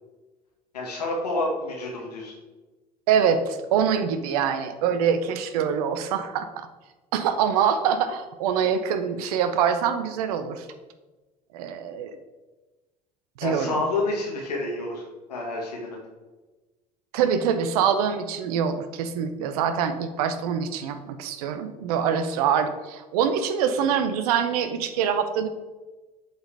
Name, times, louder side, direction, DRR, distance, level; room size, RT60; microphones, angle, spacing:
voice 1, 0.7-2.3 13.4-16.0, left 2 dB, 85° left, -1 dB, 1.6 m, -29 dB
voice 2, 3.1-6.7 7.1-10.7 11.5-12.1 13.4-13.7 17.1-25.5, right 7 dB, 70° right, 9 dB, 0.6 m, -24 dB
7.9 x 4.1 x 3.3 m, 1.2 s
hypercardioid pair, 65°, 20 cm